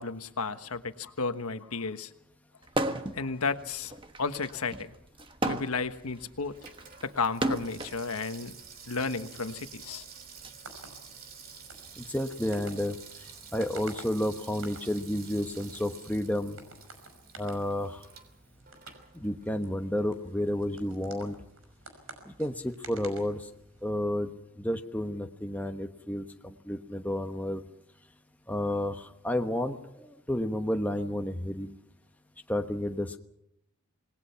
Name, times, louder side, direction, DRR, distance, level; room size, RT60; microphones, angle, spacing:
voice 1, 0.0-2.1 3.1-4.9 5.4-6.6 7.0-8.5 8.9-10.0, left 4 dB, 80° left, 10 dB, 1.3 m, -33 dB
sound 1, 2.7-3.2 3.6-8.0 8.9-10.5, right 1 dB, 20° right, 1.3 m, -33 dB
Water tap faucet / Sink (filling or washing), 5.4-19.7 20.0-20.1, right 6 dB, 40° right, 3.2 m, -50 dB
sound 2, 10.3-23.9, right 3 dB, 65° right, 5.6 m, -52 dB
voice 2, 12.0-13.0 13.5-16.6 17.4-18.0 19.1-21.4 22.3-23.5 23.8-24.3 24.6-27.6 28.5-31.7 32.5-33.2, left 1 dB, 5° left, 5 dB, 1.1 m, -31 dB
27.0 x 20.0 x 5.8 m, 0.75 s
head